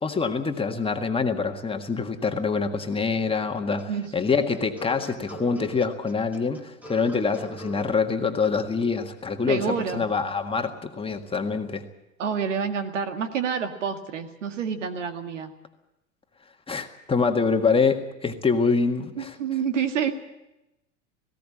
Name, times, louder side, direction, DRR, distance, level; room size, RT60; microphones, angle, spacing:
voice 1, 0.0-11.8 16.7-19.3, left 5 dB, 15° left, 5 dB, 1.8 m, -25 dB
sound 1, 3.7-7.9, right 3 dB, 5° right, 1.9 m, -43 dB
voice 2, 9.5-10.0 12.2-15.5 19.2-20.1, right 7 dB, 80° right, 8 dB, 2.0 m, -28 dB
19.0 x 16.5 x 8.7 m, 0.94 s
hypercardioid pair, 95°, 36 cm